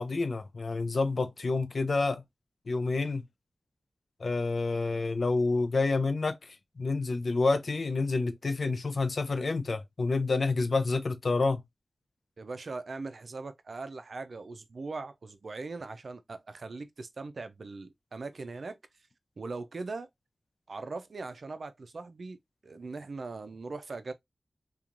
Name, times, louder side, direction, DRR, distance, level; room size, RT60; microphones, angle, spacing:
voice 1, 0.0-2.2 2.7-3.2 4.2-6.4 6.8-11.6, left 3 dB, 70° left, 0.4 m, -28 dB
voice 2, 12.4-18.8 19.4-20.1 20.7-22.4 22.6-24.1, right 3 dB, 75° right, 0.4 m, -40 dB
2.9 x 2.3 x 2.4 m
cardioid pair, 40°, 0 cm